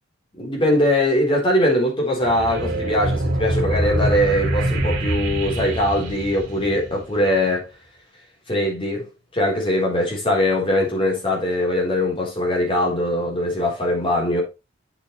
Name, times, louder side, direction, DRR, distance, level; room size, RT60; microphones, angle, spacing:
voice 1, 0.4-7.7 8.5-9.1 9.3-14.4, left 1 dB, 25° left, 3.9 m, -21 dB
sound 1, 2.2-7.2, right 1 dB, 65° right, 3.0 m, -24 dB
8.1 x 7.3 x 3.2 m
head